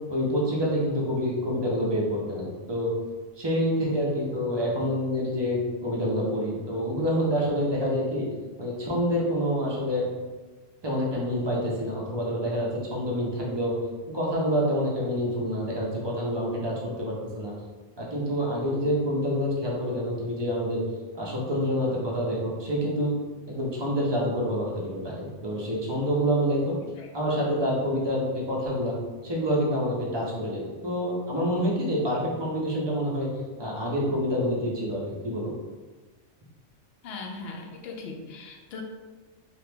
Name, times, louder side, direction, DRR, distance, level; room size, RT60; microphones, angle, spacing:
voice 1, 0.1-2.9 3.4-8.3 8.6-10.1 10.8-13.7 14.1-17.5 18.0-20.8 21.2-23.1 23.5-26.7 27.1-28.9 29.2-33.3 33.6-35.5, equal, 35° right, -4 dB, 0.4 m, -27 dB
voice 2, 26.8-27.1 37.0-38.8, left 3 dB, 65° left, 2 dB, 0.7 m, -39 dB
2.9 x 2.5 x 3.3 m, 1.3 s
omnidirectional pair, 1.4 m